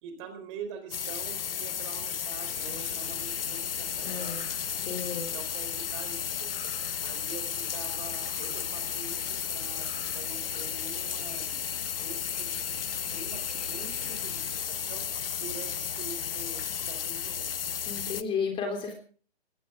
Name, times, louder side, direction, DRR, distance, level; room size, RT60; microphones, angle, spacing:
voice 1, 0.0-4.4 5.3-6.5 7.0-9.9 10.1-11.6 12.0-15.1 15.3-17.6, right 5 dB, 30° right, 7 dB, 4.1 m, -45 dB
sound 1, 0.9-18.2, left 8 dB, 60° left, 1.0 m, -33 dB
sound 2, 2.4-14.6, left 3 dB, 80° left, 5.8 m, -49 dB
voice 2, 4.0-4.5 4.8-5.3 17.9-18.9, left 5 dB, 15° left, 4 dB, 3.4 m, -33 dB
22.0 x 17.5 x 3.7 m, 0.42 s
figure-of-eight pair, 135°, 33 cm